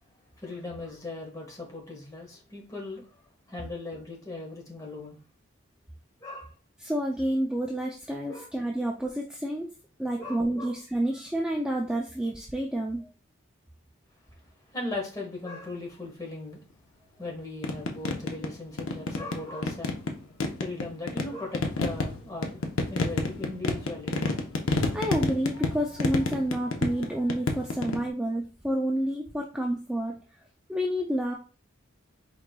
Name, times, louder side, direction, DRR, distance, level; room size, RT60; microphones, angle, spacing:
voice 1, 0.4-3.2 3.5-5.2 6.2-6.5 8.3-8.5 10.2-10.7 14.7-16.6 17.2-20.0 20.6-22.6 22.9-24.3, left 2 dB, 15° left, 1.2 m, -38 dB
voice 2, 6.8-9.7 10.0-13.0 24.9-30.1 30.7-31.3, right 1 dB, 5° right, 0.3 m, -29 dB
sound 1, 17.6-18.5 18.8-20.1 20.4-28.1, left 3 dB, 90° left, 0.7 m, -29 dB
4.6 x 3.7 x 2.2 m
head